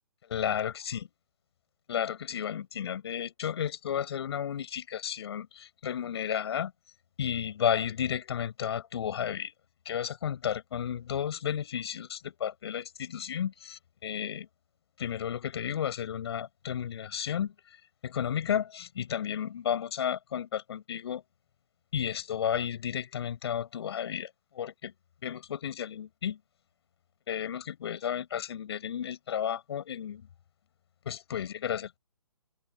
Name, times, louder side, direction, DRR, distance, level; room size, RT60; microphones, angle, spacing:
voice 1, 0.3-1.1 1.9-6.7 7.2-9.5 9.9-14.5 15.0-17.8 18.0-21.2 21.9-24.9 25.2-26.4 27.3-30.2 31.1-32.0, left 9 dB, 45° left, 6.7 m, -33 dB
open air
figure-of-eight pair, 135°, 18 cm